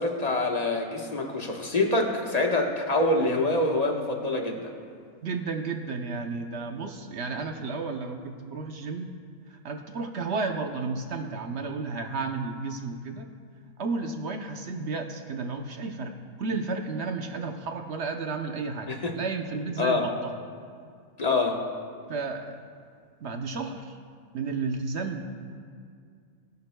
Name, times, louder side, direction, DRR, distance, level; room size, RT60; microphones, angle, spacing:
voice 1, 0.0-4.6 18.9-19.1 19.8-20.0 21.2-21.6, left 2 dB, 30° left, 1 dB, 1.2 m, -25 dB
voice 2, 5.2-9.1 9.5-13.3 13.8-16.1 16.4-20.3 22.1-22.6 23.2-24.0 24.3-25.2, right 4 dB, 55° right, 5 dB, 0.9 m, -32 dB
20.5 x 11.0 x 2.2 m, 2.2 s
omnidirectional pair, 1.5 m